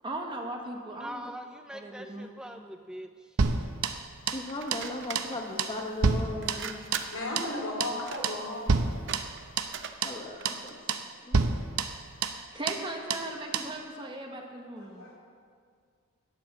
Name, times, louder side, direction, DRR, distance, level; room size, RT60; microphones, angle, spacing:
voice 1, 0.0-1.2 1.7-2.3 12.2-15.1, right 1 dB, 20° right, 2 dB, 1.2 m, -38 dB
voice 2, 0.9-3.4, right 1 dB, 5° right, 6 dB, 0.4 m, -43 dB
sound 1, 3.4-4.5 4.7-4.9 5.1-5.3 5.6-7.1 7.4-7.5 7.8-8.0 8.2-8.4 8.7-9.8 10.0-10.2 10.4-10.6 10.9-11.1 11.3-12.4 12.7-12.8 13.1-13.3 13.5-13.7, right 4 dB, 90° right, 0.8 m, -29 dB
voice 3, 4.3-6.9 10.0-10.8 11.2-11.4, left 1 dB, 25° left, 1 dB, 1.0 m, -37 dB
sound 2, 4.5-10.8, right 7 dB, 55° right, 0.7 m, -43 dB
voice 4, 7.1-8.7 14.8-15.2, left 1 dB, 90° left, -5 dB, 4.1 m, -35 dB
11.5 x 10.5 x 7.3 m, 2.1 s
head